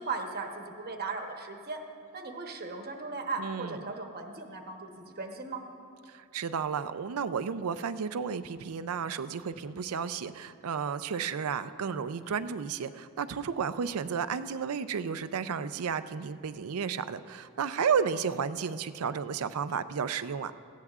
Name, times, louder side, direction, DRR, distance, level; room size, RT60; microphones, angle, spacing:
voice 1, 0.0-1.8 2.1-5.6, right 4 dB, 45° right, 3 dB, 1.0 m, -37 dB
voice 2, 3.4-3.9 6.1-20.5, right 6 dB, 70° right, 12 dB, 0.5 m, -32 dB
18.5 x 15.5 x 2.4 m, 2.4 s
head